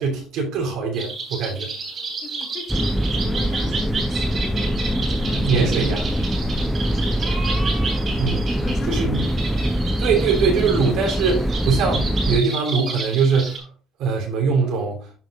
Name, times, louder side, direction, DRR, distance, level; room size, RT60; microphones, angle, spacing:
voice 1, 0.0-1.7 5.4-6.1 8.2-8.4 8.9-9.2 10.0-13.6 14.0-15.0, right 5 dB, 75° right, 3.1 m, -22 dB
sound 1, 0.9-13.6, right 4 dB, 40° right, 3.3 m, -31 dB
voice 2, 2.2-5.6 6.7-7.4 8.0-9.3, left 5 dB, 40° left, 1.8 m, -38 dB
sound 2, 2.7-12.4, equal, ahead, 0.4 m, -23 dB
13.0 x 5.2 x 2.4 m
cardioid pair, 140°, 0 cm